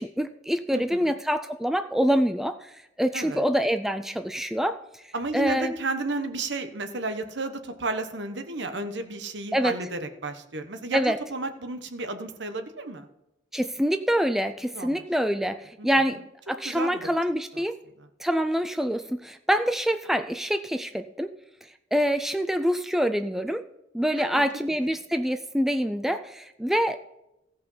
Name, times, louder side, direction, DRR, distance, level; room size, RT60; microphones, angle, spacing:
voice 1, 0.0-4.8 5.3-5.7 9.5-9.8 10.9-11.2 13.5-16.2 16.5-17.7 18.2-21.3 21.9-23.6 23.9-27.0, equal, ahead, 9 dB, 0.3 m, -25 dB
voice 2, 0.7-1.1 3.1-3.5 5.1-11.0 11.3-13.1 14.7-15.0 15.8-16.2 16.6-17.0 17.5-17.6 18.0-18.1 24.2-24.4, right 2 dB, 65° right, 8 dB, 1.1 m, -33 dB
16.0 x 5.5 x 5.6 m, 0.87 s
head